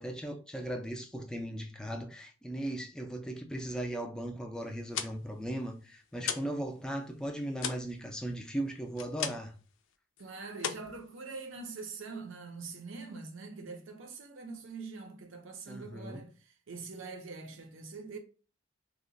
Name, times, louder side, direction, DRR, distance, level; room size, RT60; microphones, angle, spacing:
voice 1, 0.0-9.5 15.7-16.2, right 1 dB, 5° left, 0.3 m, -37 dB
sound 1, 4.7-6.6 6.9-9.6 9.9-10.2 10.6-11.7, left 8 dB, 70° left, 0.4 m, -38 dB
voice 2, 10.2-18.2, right 4 dB, 75° right, 0.6 m, -44 dB
2.9 x 2.1 x 3.8 m
head